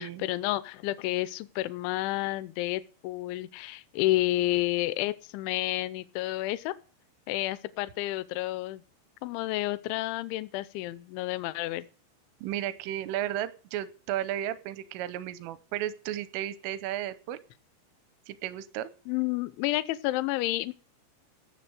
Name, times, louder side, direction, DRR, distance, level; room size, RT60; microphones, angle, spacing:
voice 1, 0.0-6.7 7.3-8.8 9.2-11.9 19.1-20.7, left 17 dB, 80° left, 15 dB, 2.9 m, -30 dB
voice 2, 12.4-17.4 18.3-18.9, right 12 dB, 85° right, 14 dB, 3.3 m, -34 dB
17.5 x 6.9 x 5.0 m, 0.41 s
omnidirectional pair, 5.8 m